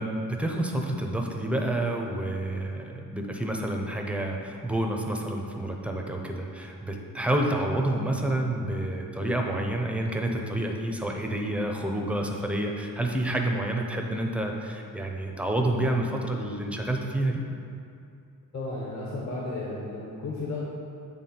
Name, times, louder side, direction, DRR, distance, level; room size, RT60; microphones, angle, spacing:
voice 1, 0.0-17.4, right 1 dB, 5° right, 1 dB, 0.5 m, -29 dB
voice 2, 18.5-20.6, left 2 dB, 50° left, -6 dB, 1.1 m, -33 dB
8.4 x 3.5 x 4.2 m, 2.5 s
wide cardioid pair, 140°, 36 cm